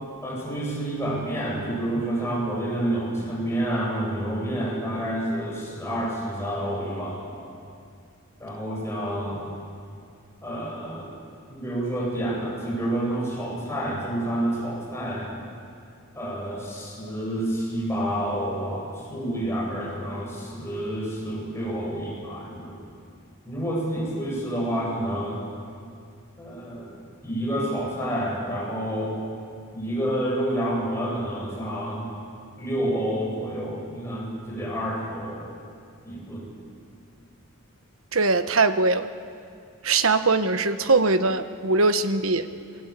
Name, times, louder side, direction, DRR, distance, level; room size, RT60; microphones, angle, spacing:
voice 1, 0.2-7.5 8.4-9.4 10.4-11.1 11.5-15.3 16.1-22.8 23.5-25.4 26.4-26.9 27.2-29.2 29.7-32.1 32.6-35.5 36.0-36.5, right 1 dB, 10° left, -4 dB, 7.7 m, -29 dB
voice 2, 38.1-39.1 39.8-42.5, right 3 dB, 75° right, 10 dB, 1.3 m, -21 dB
28.0 x 23.0 x 8.4 m, 2.3 s
head